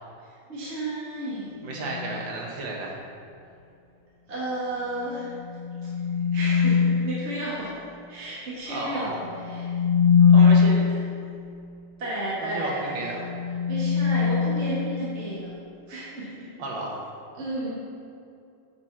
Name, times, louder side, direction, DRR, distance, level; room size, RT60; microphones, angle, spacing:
voice 1, 0.5-1.5 4.3-5.3 6.3-7.7 8.1-9.8 12.0-13.0 13.7-15.5 15.9-16.5 17.3-17.7, right 1 dB, 40° right, -8 dB, 1.6 m, -32 dB
voice 2, 1.6-3.0 8.7-9.2 10.3-10.9 12.4-13.3 16.6-17.1, right 2 dB, 75° right, -2 dB, 1.9 m, -33 dB
sound 1, 1.7-2.2 5.3-7.2 9.3-11.0 13.0-15.3, left 6 dB, 80° left, 1.6 m, -22 dB
9.3 x 4.2 x 4.5 m, 2.5 s
omnidirectional pair, 2.0 m